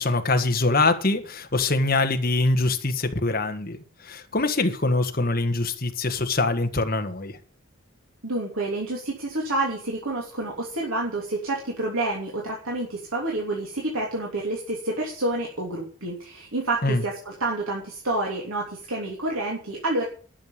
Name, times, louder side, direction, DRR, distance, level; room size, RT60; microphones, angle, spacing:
voice 1, 0.0-3.8 4.0-7.4 16.8-17.0, left 2 dB, 40° left, 1.6 m, -23 dB
voice 2, 8.2-20.1, right 2 dB, 75° right, 3.1 m, -28 dB
12.0 x 6.8 x 8.9 m
head